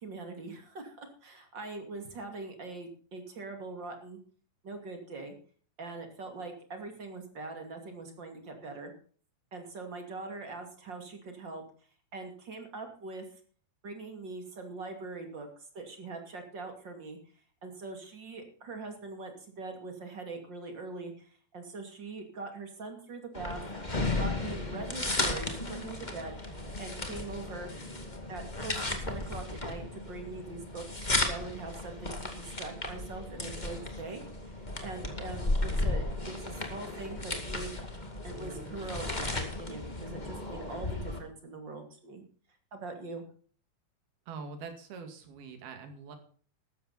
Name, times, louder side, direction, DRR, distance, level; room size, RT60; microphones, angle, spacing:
voice 1, 0.0-4.2 4.6-5.3 5.8-8.9 9.5-11.6 12.1-13.2 13.8-15.5 15.7-17.2 17.6-21.3 21.5-23.6 24.2-26.4 26.8-27.7 28.3-37.7 38.2-42.2 42.7-43.2, right 3 dB, 35° right, 5 dB, 2.4 m, -42 dB
sound 1, 23.3-41.2, left 2 dB, 25° left, 0.9 m, -35 dB
voice 2, 44.3-46.2, right 5 dB, 65° right, 6 dB, 4.1 m, -44 dB
14.0 x 12.5 x 4.2 m, 0.44 s
omnidirectional pair, 4.9 m